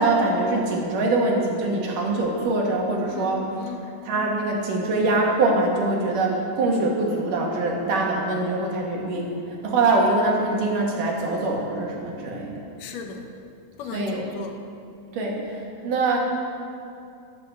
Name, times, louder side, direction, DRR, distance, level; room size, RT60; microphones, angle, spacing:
voice 1, 0.0-3.4 4.1-12.5 13.9-14.3 15.1-15.4 15.8-16.2, right 2 dB, 85° right, -1 dB, 3.5 m, -23 dB
voice 2, 3.1-4.0 12.8-13.3 13.8-14.6, left 5 dB, 85° left, 4 dB, 2.7 m, -36 dB
11.5 x 9.2 x 7.7 m, 2.6 s
omnidirectional pair, 3.6 m